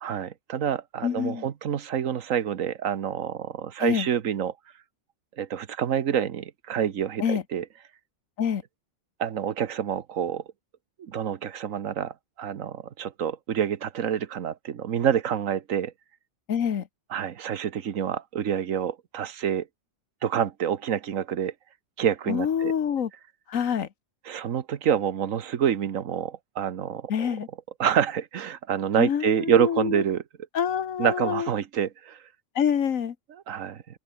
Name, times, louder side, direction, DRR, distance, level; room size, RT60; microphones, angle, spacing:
voice 1, 0.0-4.5 5.4-7.6 9.2-10.4 11.0-15.9 17.1-19.7 20.2-21.5 22.0-22.7 24.3-27.3 27.8-30.2 31.0-32.2 33.5-33.8, right 9 dB, 80° right, 1.4 m, -27 dB
voice 2, 1.0-1.4 3.8-4.1 7.2-7.4 8.4-8.6 16.5-16.9 22.3-23.1 23.5-23.9 27.1-27.5 29.0-30.0 30.5-31.5 32.5-33.1, left 8 dB, 90° left, 1.6 m, -26 dB
open air
omnidirectional pair, 1.3 m